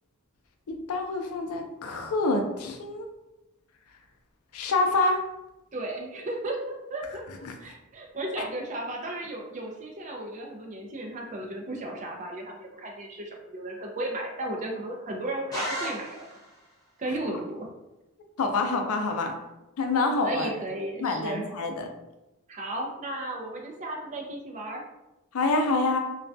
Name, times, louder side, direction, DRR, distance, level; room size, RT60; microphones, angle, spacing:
voice 1, 0.7-3.1 4.5-5.2 7.4-7.6 18.4-19.3 19.8-20.5 21.0-21.9 25.3-26.0, left 3 dB, 75° left, 4 dB, 0.4 m, -26 dB
voice 2, 5.7-7.2 7.6-16.2 17.0-17.7 20.2-21.4 22.5-24.8, right 1 dB, 35° right, 1 dB, 0.4 m, -34 dB
sound 1, 15.5-16.6, equal, 15° left, 0.6 m, -34 dB
2.3 x 2.1 x 2.5 m, 0.95 s
head